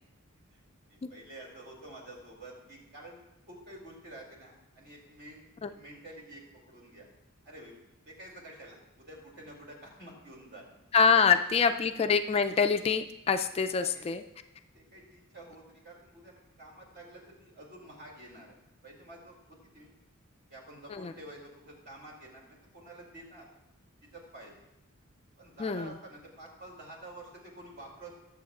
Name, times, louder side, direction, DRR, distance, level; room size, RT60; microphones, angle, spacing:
voice 1, 0.9-7.1 7.4-7.7 8.1-10.8 13.7-14.1 14.7-18.5 18.8-19.9 20.5-23.5 24.1-24.5 25.4-28.2, right 1 dB, 50° right, -1 dB, 2.6 m, -49 dB
voice 2, 10.9-14.2 20.9-21.1 25.6-25.9, left 5 dB, 30° left, 8 dB, 0.3 m, -25 dB
20.5 x 7.1 x 2.4 m, 0.93 s
head